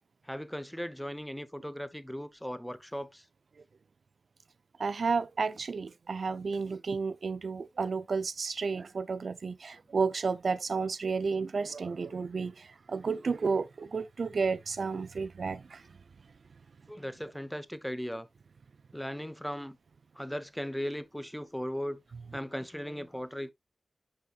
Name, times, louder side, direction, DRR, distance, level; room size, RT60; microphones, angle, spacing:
voice 1, 0.2-3.2 16.9-18.3 18.9-19.8 20.2-22.0 22.3-23.5, equal, 5° left, 0.7 m, -37 dB
voice 2, 4.8-15.9, right 4 dB, 75° right, 0.4 m, -32 dB
10.5 x 4.2 x 2.3 m
wide cardioid pair, 80°, 0 cm